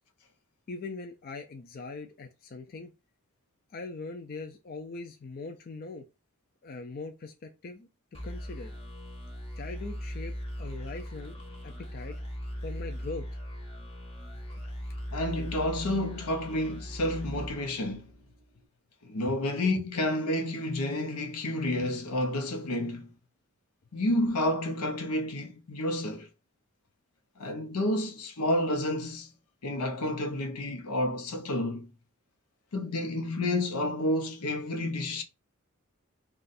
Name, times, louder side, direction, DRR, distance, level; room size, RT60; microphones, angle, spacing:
voice 1, 0.7-2.9 3.7-6.0 6.6-7.9 8.2-8.7 9.6-11.4 11.6-12.2 12.6-13.4 19.3-19.4, left 3 dB, 40° left, 0.4 m, -41 dB
sound 1, 8.1-18.4, equal, 25° left, 0.8 m, -39 dB
voice 2, 15.1-18.1 19.0-23.1 23.9-26.3 27.4-29.3 29.6-31.9 32.7-35.2, left 1 dB, 85° left, 0.7 m, -30 dB
2.5 x 2.3 x 4.0 m
head